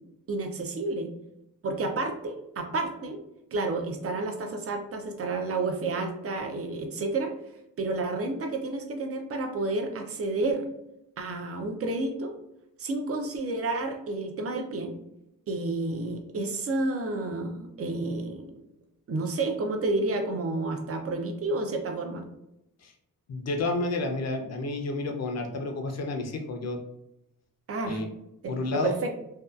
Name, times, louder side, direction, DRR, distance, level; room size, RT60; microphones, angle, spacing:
voice 1, 0.3-1.1 1.6-3.2 3.5-7.3 7.8-10.6 11.2-12.3 12.8-14.9 15.5-18.5 19.1-22.2 27.7-28.0 28.4-28.5 28.8-29.1, right 2 dB, 40° right, 4 dB, 0.5 m, -30 dB
voice 2, 23.3-26.8 27.8-28.1 28.5-28.9, left 2 dB, 45° left, 4 dB, 0.5 m, -30 dB
2.6 x 2.3 x 2.3 m, 0.85 s
cardioid pair, 90°, 36 cm